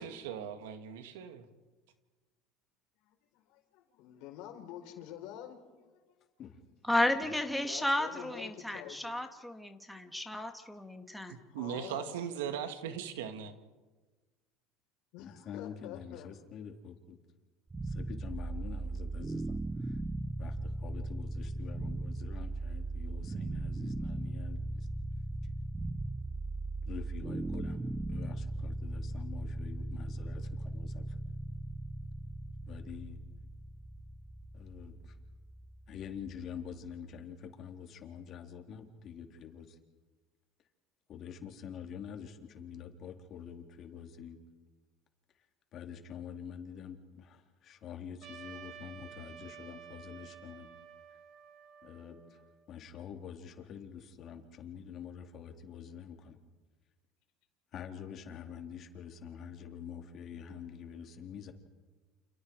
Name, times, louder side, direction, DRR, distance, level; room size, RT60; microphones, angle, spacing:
voice 1, 0.0-1.4 11.3-13.6, right 8 dB, 85° right, 2.2 m, -39 dB
voice 2, 3.0-5.8 7.5-9.1 11.5-12.2 15.1-16.3, left 11 dB, 70° left, 4.8 m, -47 dB
voice 3, 6.9-11.4, left 1 dB, ahead, 2.4 m, -33 dB
voice 4, 15.2-17.2 17.8-20.0 20.4-24.9 26.9-27.8 28.1-31.2 32.7-33.2 34.5-35.2 35.9-39.8 41.1-44.4 45.7-50.7 51.8-52.4 52.7-56.4 57.7-61.5, left 8 dB, 50° left, 3.9 m, -46 dB
sound 1, 17.7-36.7, right 2 dB, 15° right, 1.2 m, -38 dB
Trumpet, 48.2-52.7, right 8 dB, 60° right, 2.8 m, -51 dB
30.0 x 28.5 x 4.9 m
supercardioid pair, 95°, 0 cm